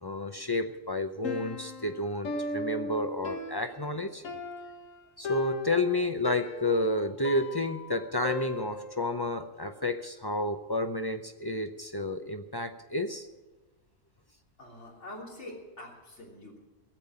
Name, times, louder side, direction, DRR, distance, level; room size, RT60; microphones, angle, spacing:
voice 1, 0.0-4.2 5.2-13.3, left 2 dB, 30° left, 7 dB, 0.4 m, -31 dB
Piano, 1.2-9.1, left 2 dB, 85° left, 1.5 m, -38 dB
voice 2, 14.6-16.6, left 1 dB, 65° left, -2 dB, 3.5 m, -45 dB
17.5 x 7.3 x 8.7 m, 1.2 s
omnidirectional pair, 1.3 m